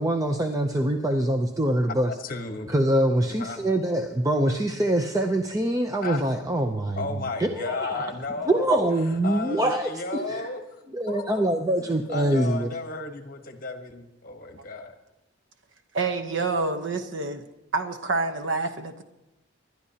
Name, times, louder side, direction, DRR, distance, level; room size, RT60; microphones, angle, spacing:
voice 1, 0.0-2.1 2.7-7.0 7.4-8.1 8.5-10.5 10.9-12.7, right 1 dB, 15° right, 5 dB, 0.5 m, -24 dB
voice 2, 2.1-2.7 3.3-3.6 6.0-6.2 7.0-8.8 9.0-10.6 11.1-11.5 11.8-15.0, left 3 dB, 45° left, 6 dB, 1.1 m, -34 dB
voice 3, 15.9-17.5 17.7-19.0, right 3 dB, 70° right, 8 dB, 0.9 m, -27 dB
26.5 x 12.0 x 2.8 m, 0.96 s
head